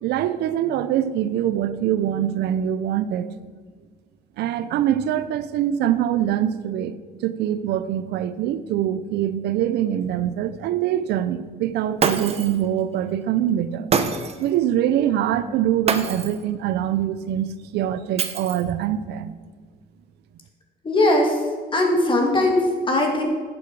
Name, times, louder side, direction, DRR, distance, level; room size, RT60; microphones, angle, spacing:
voice 1, 0.0-3.3 4.4-6.9 7.2-13.9 14.4-19.3, right 11 dB, 75° right, 13 dB, 0.6 m, -24 dB
Shatter, 12.0-12.6 13.9-14.5 15.9-16.4 18.2-18.8, right 5 dB, 40° right, 0.8 m, -25 dB
voice 2, 20.8-21.4 21.7-23.2, left 1 dB, 30° left, 1 dB, 2.3 m, -19 dB
11.5 x 7.3 x 4.7 m, 1.5 s
cardioid pair, 110°, 17 cm